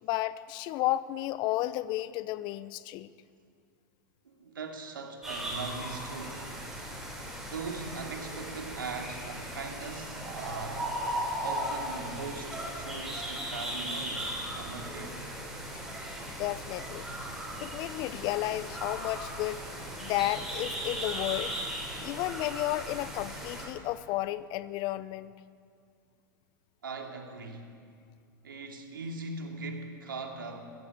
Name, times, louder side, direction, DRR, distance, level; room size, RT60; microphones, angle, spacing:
voice 1, 0.0-3.1 16.2-17.1 17.6-19.6 20.0-21.6 22.0-25.3, left 16 dB, 45° left, 16 dB, 0.9 m, -32 dB
voice 2, 4.2-6.5 7.5-10.9 11.4-15.2 26.8-27.6 28.4-30.6, right 4 dB, 75° right, 3 dB, 2.8 m, -40 dB
sound 1, 5.2-23.7, equal, 5° right, 8.0 m, -37 dB
22.5 x 15.0 x 8.6 m, 2.2 s
figure-of-eight pair, 95°, 11 cm